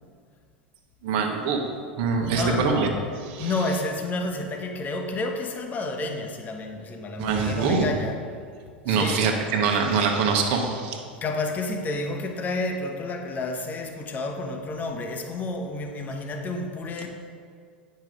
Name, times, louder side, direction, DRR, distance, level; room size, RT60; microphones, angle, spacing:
voice 1, 1.0-1.6 2.0-2.9 3.2-3.5 7.1-7.9 8.8-11.0, right 5 dB, 55° right, 1.2 m, -24 dB
voice 2, 2.3-2.8 3.4-8.2 8.9-9.3 11.2-17.1, left 2 dB, 30° left, 1.1 m, -30 dB
9.2 x 5.5 x 5.0 m
hypercardioid pair, 85°, 6 cm